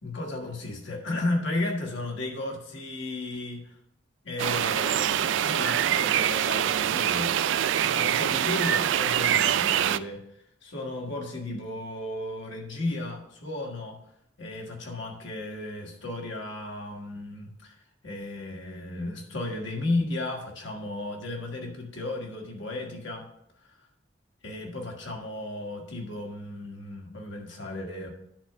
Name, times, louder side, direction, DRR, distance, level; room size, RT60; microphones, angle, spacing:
voice 1, 0.0-3.8 4.2-7.3 7.8-10.2 10.6-14.0 14.4-17.8 18.0-23.3 23.7-23.8 24.4-28.1, left 2 dB, 85° left, 0 dB, 1.9 m, -34 dB
sound 1, 4.4-10.0, right 10 dB, 85° right, 0.3 m, -24 dB
10.0 x 3.5 x 6.8 m, 0.74 s
head